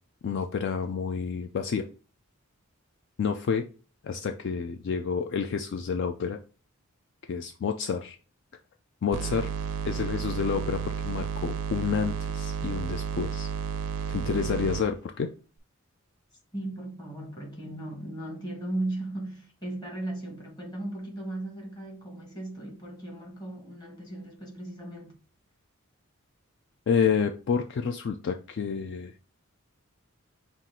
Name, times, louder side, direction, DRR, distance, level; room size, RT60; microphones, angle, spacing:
voice 1, 0.2-1.9 3.2-3.6 4.0-6.4 7.3-8.2 9.0-9.5 9.9-13.5 14.1-15.3 26.9-29.1, left 6 dB, 55° left, 0.3 m, -29 dB
sound 1, 9.1-14.8, right 7 dB, 90° right, 0.5 m, -32 dB
voice 2, 16.5-25.2, right 1 dB, 20° left, 1.2 m, -37 dB
5.8 x 2.4 x 3.6 m
head